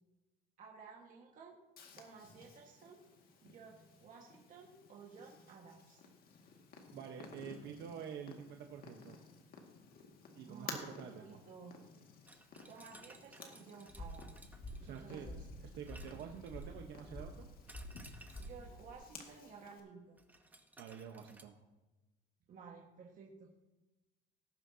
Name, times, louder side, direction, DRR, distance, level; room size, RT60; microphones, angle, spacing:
voice 1, 0.6-1.5 1.9-3.0 3.4-6.0 10.5-11.7 12.7-14.4 14.8-15.5 18.4-20.2 22.5-23.5, right 5 dB, 45° right, -2 dB, 1.6 m, -54 dB
Purr, 1.8-19.8, left 5 dB, 50° left, 2.0 m, -55 dB
voice 2, 6.9-9.2 10.4-11.4 14.8-15.3 15.6-17.5 20.8-21.5, right 8 dB, 65° right, 3 dB, 1.1 m, -48 dB
sound 1, 12.3-15.3 15.9-16.8 17.7-18.7 20.2-21.4, right 2 dB, 10° right, 1.0 m, -59 dB
sound 2, 13.9-18.9, equal, 25° left, 3.7 m, -49 dB
18.5 x 9.9 x 2.8 m, 1.1 s
cardioid pair, 150°, 19 cm